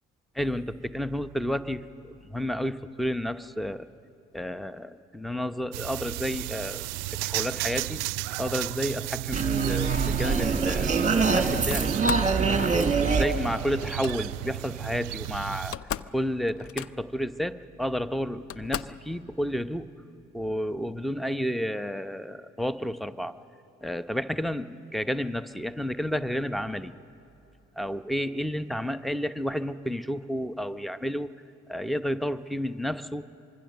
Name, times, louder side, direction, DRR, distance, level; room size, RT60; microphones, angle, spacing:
voice 1, 0.4-1.8 2.3-3.9 4.3-6.8 7.2-8.0 8.4-10.9 11.3-12.0 12.4-15.8 16.1-19.9 20.3-23.3 23.8-26.9 27.8-31.3 31.7-33.3, equal, ahead, 14 dB, 0.8 m, -31 dB
sound 1, 5.7-15.7, right 17 dB, 70° right, 0.5 m, -33 dB
sound 2, 9.3-14.5, right 4 dB, 20° right, 1.7 m, -25 dB
Slam, 11.7-12.4 13.7-14.2 15.2-15.3 15.6-16.2 16.5-17.2 17.9-18.0 18.5-19.1, left 10 dB, 40° left, 0.6 m, -36 dB
25.5 x 22.5 x 6.7 m, 2.7 s
figure-of-eight pair, 40°, 36 cm